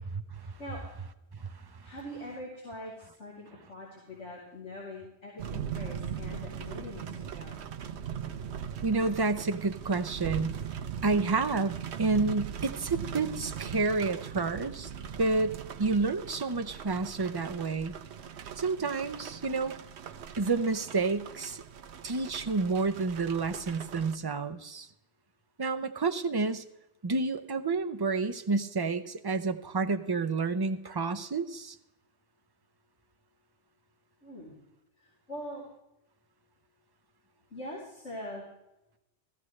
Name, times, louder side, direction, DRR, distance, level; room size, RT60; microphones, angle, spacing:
voice 1, 0.4-0.9 1.8-7.6 34.2-34.6 35.0-35.6 37.5-38.4, left 1 dB, 90° left, -5 dB, 3.4 m, -43 dB
sound 1, 5.4-24.2, right 8 dB, 75° right, 1.0 m, -40 dB
voice 2, 8.8-10.6 11.0-14.9 15.2-17.9 18.6-19.7 20.4-21.6 22.0-24.9 25.6-26.6 27.0-31.8, right 3 dB, 30° right, 8 dB, 0.5 m, -29 dB
15.5 x 14.5 x 3.2 m, 0.88 s
omnidirectional pair, 1.2 m